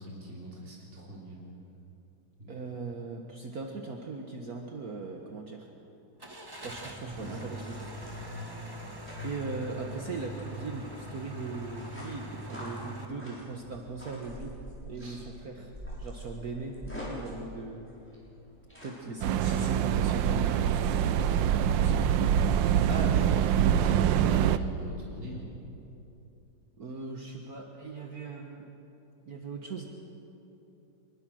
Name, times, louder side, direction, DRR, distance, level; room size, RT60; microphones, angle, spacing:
voice 1, 0.0-1.4 2.4-2.7 14.9-15.2 22.8-25.5, equal, 35° right, -4 dB, 3.7 m, -42 dB
voice 2, 2.5-5.7 6.6-8.4 9.2-14.5 14.9-15.7 16.0-17.9 18.8-21.5 21.8-22.0 22.8-23.1 26.8-28.7 29.3-29.9, right 3 dB, 55° right, 2 dB, 1.8 m, -39 dB
Car / Engine starting, 6.2-13.1, equal, 15° right, 1.6 m, -42 dB
sound 1, 7.8-19.0, equal, 5° left, 6.4 m, -46 dB
sound 2, 19.2-24.6, right 9 dB, 85° right, 1.4 m, -25 dB
25.0 x 22.0 x 6.3 m, 2.9 s
omnidirectional pair, 2.0 m